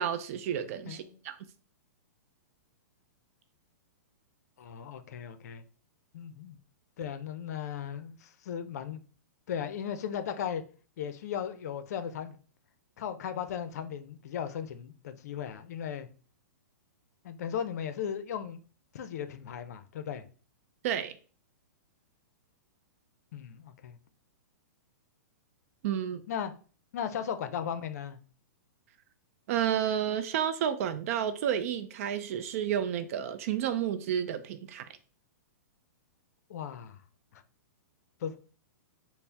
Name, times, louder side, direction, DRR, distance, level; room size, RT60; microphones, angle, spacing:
voice 1, 0.0-1.4 20.8-21.1 25.8-26.2 29.5-34.9, right 9 dB, 55° right, 0.4 m, -31 dB
voice 2, 0.8-1.2 4.6-5.6 6.1-6.6 7.0-9.0 9.5-10.6 11.0-12.4 13.0-16.1 17.2-18.6 18.9-20.2 23.3-24.0 26.3-26.5 26.9-28.2 36.5-37.0 37.3-37.4 38.2-38.6, left 8 dB, 65° left, 0.5 m, -37 dB
4.2 x 2.0 x 3.4 m
hypercardioid pair, 130°, 9 cm